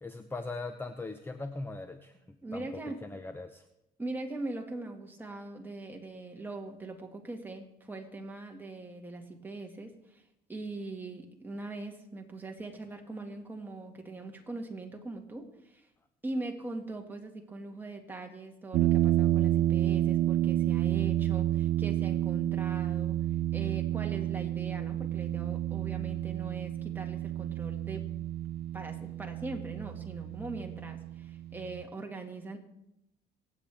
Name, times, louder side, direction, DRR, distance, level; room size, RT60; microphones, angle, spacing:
voice 1, 0.0-2.6 3.0-3.6, left 3 dB, 15° left, 8 dB, 0.7 m, -40 dB
voice 2, 2.4-3.0 4.0-10.2 10.5-15.9 16.2-23.2 23.5-28.0 28.7-32.6, right 2 dB, 10° right, 2 dB, 2.0 m, -41 dB
sound 1, 18.7-31.8, right 13 dB, 70° right, 0.6 m, -30 dB
25.0 x 8.6 x 3.6 m, 0.83 s
cardioid pair, 110°, 17 cm